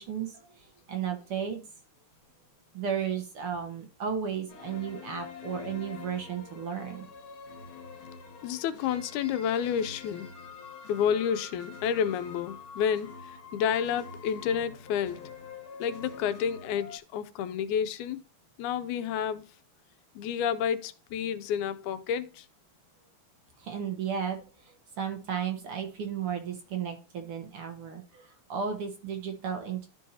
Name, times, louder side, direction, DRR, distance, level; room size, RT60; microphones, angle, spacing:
voice 1, 0.0-1.6 2.7-7.1 23.6-29.9, right 7 dB, 60° right, 1.9 m, -34 dB
sound 1, 4.5-17.0, left 5 dB, 50° left, 2.4 m, -46 dB
voice 2, 8.4-10.3 10.9-15.3 15.8-18.2 18.6-19.4 20.2-22.5, left 8 dB, 85° left, 2.1 m, -30 dB
13.0 x 4.6 x 2.7 m
omnidirectional pair, 3.4 m